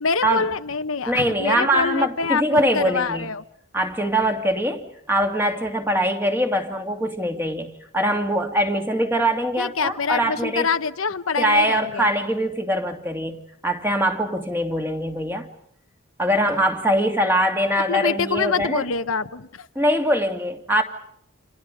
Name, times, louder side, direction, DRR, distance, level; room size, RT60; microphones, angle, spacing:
voice 1, 0.0-3.4 9.6-12.1 17.9-19.7, left 5 dB, 75° left, 1.0 m, -25 dB
voice 2, 1.1-3.3 3.7-10.7 11.4-15.5 16.2-18.8 19.8-20.8, equal, 10° right, 2.5 m, -22 dB
29.5 x 27.5 x 5.1 m
head